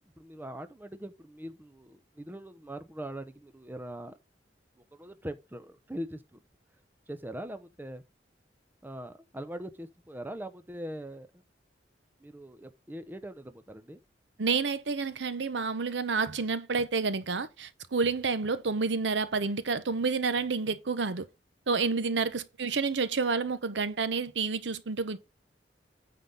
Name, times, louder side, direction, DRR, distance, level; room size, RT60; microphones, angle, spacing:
voice 1, 0.2-4.2 4.9-6.4 7.1-8.0 8.8-11.3 12.2-14.0, right 1 dB, 10° right, 0.7 m, -41 dB
voice 2, 14.4-21.2 21.7-25.2, right 4 dB, 80° right, 0.8 m, -29 dB
9.2 x 3.9 x 5.5 m
head